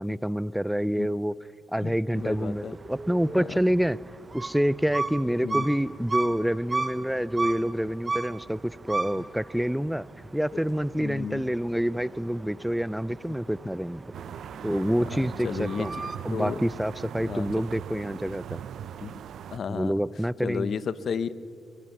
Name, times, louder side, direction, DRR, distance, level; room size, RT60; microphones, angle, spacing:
voice 1, 0.0-1.4 1.7-4.0 4.3-10.1 10.3-14.0 14.6-15.9 16.2-18.6 19.7-20.7, equal, 5° right, 20 dB, 0.4 m, -27 dB
voice 2, 1.8-2.8 3.3-3.6 5.4-5.6 9.2-9.3 10.5-10.6 10.9-11.4 15.4-16.6 17.2-17.5 19.0-19.1 19.5-19.9 20.4-21.3, left 6 dB, 50° left, 16 dB, 0.8 m, -33 dB
sound 1, 2.1-16.2, right 3 dB, 30° right, 0.8 m, -36 dB
sound 2, 14.1-19.6, right 9 dB, 65° right, 0.6 m, -40 dB
23.0 x 22.0 x 6.5 m, 2.4 s
cardioid pair, 90°, 0 cm